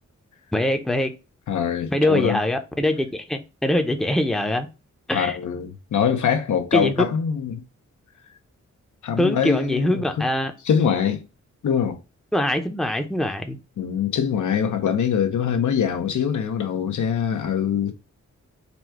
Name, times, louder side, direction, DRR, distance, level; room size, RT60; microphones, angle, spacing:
voice 1, 0.5-1.1 1.9-4.7 5.1-5.4 6.7-7.1 9.2-10.5 12.3-13.6, left 1 dB, ahead, 0.6 m, -23 dB
voice 2, 1.5-2.4 5.1-7.6 9.0-10.3 10.6-11.2 11.6-12.0 13.8-18.0, left 8 dB, 80° left, 0.8 m, -23 dB
4.1 x 2.2 x 4.4 m
wide cardioid pair, 100°, 30 cm